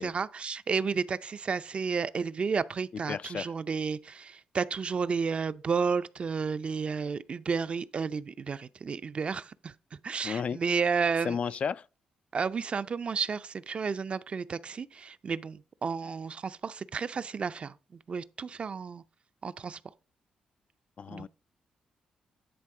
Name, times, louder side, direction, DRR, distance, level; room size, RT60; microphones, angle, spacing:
voice 1, 0.0-9.7 10.0-11.4 12.3-17.7 18.1-19.0 19.4-19.8 21.1-21.3, right 5 dB, 50° right, 0.5 m, -32 dB
voice 2, 3.1-3.5 10.2-10.6 11.2-11.9 21.0-21.3, left 6 dB, 55° left, 0.3 m, -33 dB
10.0 x 3.5 x 4.8 m
supercardioid pair, 60°, 3 cm